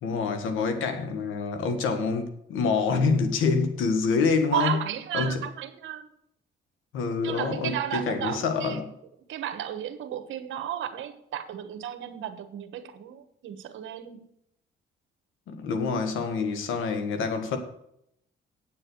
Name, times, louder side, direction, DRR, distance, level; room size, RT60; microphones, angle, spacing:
voice 1, 0.0-4.8 5.1-5.4 6.9-8.9 15.5-17.6, left 4 dB, 90° left, 1.7 m, -26 dB
voice 2, 4.5-6.1 7.2-8.8 9.3-14.2, right 10 dB, 80° right, 1.3 m, -33 dB
8.8 x 7.7 x 6.3 m
cardioid pair, 90°, 20 cm